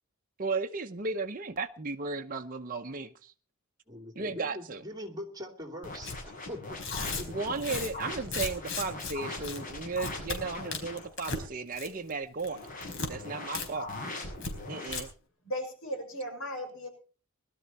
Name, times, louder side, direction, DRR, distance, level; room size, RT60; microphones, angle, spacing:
voice 1, 0.4-3.3 4.2-4.8 7.3-12.6 13.1-13.9 14.7-15.1, right 4 dB, 40° right, 4 dB, 0.8 m, -35 dB
voice 2, 3.9-6.1 6.5-6.8 7.2-7.3, left 1 dB, 20° right, 5 dB, 2.9 m, -42 dB
sound 1, 5.8-11.1 12.4-14.9, left 2 dB, 40° left, 7.4 m, -41 dB
Tearing, 6.0-6.2 6.7-9.1 9.4-9.6 9.9-10.4 10.7-11.4 11.7-12.1 12.4-13.1 13.5-13.7 13.9-14.0 14.4-14.5 14.8-15.0, left 4 dB, 60° left, 4.3 m, -36 dB
voice 3, 15.4-16.9, equal, 75° left, 4 dB, 6.3 m, -36 dB
21.0 x 12.5 x 4.2 m, 0.37 s
head